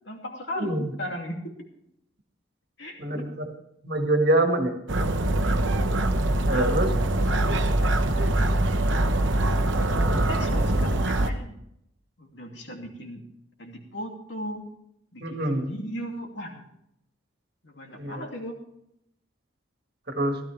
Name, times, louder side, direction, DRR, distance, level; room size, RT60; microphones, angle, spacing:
voice 1, 0.0-1.4 2.8-3.3 6.4-6.7 7.2-8.1 9.8-11.6 12.2-13.2 13.6-14.6 15.1-16.6 17.6-18.6, equal, 60° left, 2 dB, 2.6 m, -37 dB
voice 2, 0.6-0.9 3.0-3.5 3.8-4.8 6.5-7.0 10.1-10.2 15.2-15.7 18.0-18.3 20.1-20.4, right 1 dB, 50° right, 4 dB, 1.8 m, -25 dB
sound 1, 4.9-11.3, right 1 dB, 70° right, 1.0 m, -23 dB
16.0 x 13.0 x 3.4 m, 0.77 s
head